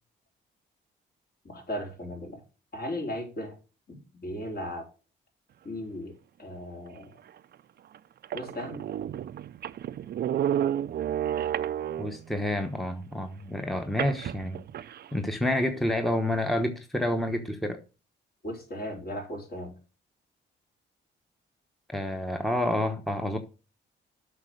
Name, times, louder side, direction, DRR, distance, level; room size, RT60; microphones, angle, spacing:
voice 1, 1.4-2.4 2.7-3.6 3.9-4.9 5.6-7.2 8.3-8.8 18.4-19.8, left 1 dB, 50° left, 4.1 m, -37 dB
sound 1, 7.3-7.4 7.9-8.0 8.2-12.3 14.0-15.1, right 10 dB, 55° right, 0.5 m, -31 dB
voice 2, 12.0-14.6 15.1-17.8 21.9-23.4, left 1 dB, ahead, 1.0 m, -29 dB
8.1 x 6.1 x 6.3 m
cardioid pair, 90°, 20 cm